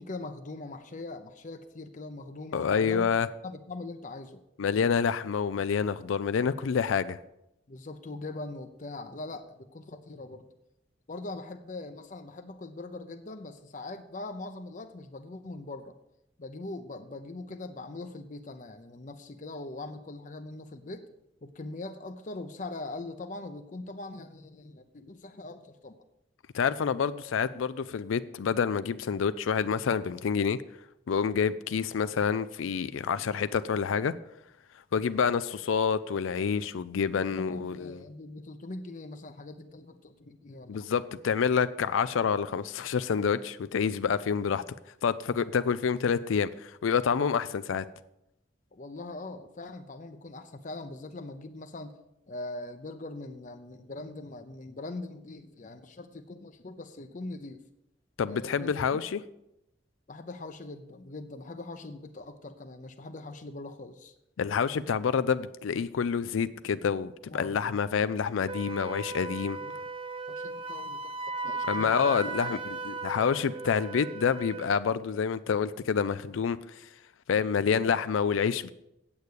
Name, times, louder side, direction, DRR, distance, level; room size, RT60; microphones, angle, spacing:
voice 1, 0.0-4.4 7.7-10.5 11.1-16.0 16.4-21.1 21.4-26.0 37.2-40.9 48.7-52.0 52.3-57.6 58.3-59.0 60.1-64.1 67.3-67.8 69.6-69.7 70.3-71.2 71.4-72.2 72.5-72.6, left 2 dB, 40° left, 8 dB, 0.6 m, -41 dB
voice 2, 2.5-3.3 4.6-7.2 26.5-30.6 31.1-34.1 34.9-38.0 40.7-44.6 45.0-47.8 58.2-59.2 64.4-69.6 71.7-76.9 77.3-78.7, left 6 dB, 90° left, 13 dB, 0.4 m, -28 dB
Wind instrument woodwind instrument, 68.5-74.8, right 3 dB, 30° right, 0.6 m, -37 dB
8.7 x 8.2 x 6.4 m, 0.86 s
head